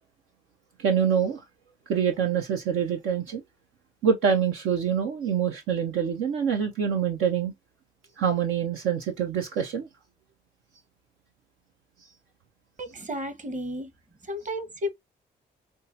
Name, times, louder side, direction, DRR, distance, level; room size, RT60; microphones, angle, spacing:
voice 1, 0.8-1.4 1.9-3.4 4.0-7.5 8.2-9.9, right 7 dB, 80° right, 0.8 m, -25 dB
voice 2, 12.8-13.9 14.3-14.9, left 1 dB, 35° right, 1.3 m, -33 dB
5.4 x 2.3 x 2.7 m
supercardioid pair, 45°, 21 cm